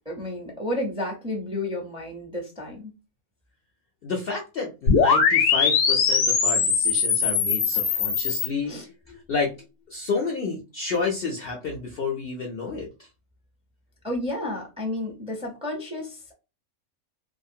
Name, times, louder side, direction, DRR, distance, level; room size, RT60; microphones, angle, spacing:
voice 1, 0.0-2.9 7.7-8.1 8.6-8.8 14.0-16.3, left 1 dB, 5° right, 0 dB, 0.6 m, -32 dB
voice 2, 4.0-9.5 9.9-13.1, left 4 dB, 60° left, 1 dB, 0.6 m, -30 dB
sound 1, 4.9-8.5, left 5 dB, 75° left, 1.0 m, -21 dB
2.5 x 2.4 x 2.7 m, 0.29 s
omnidirectional pair, 1.4 m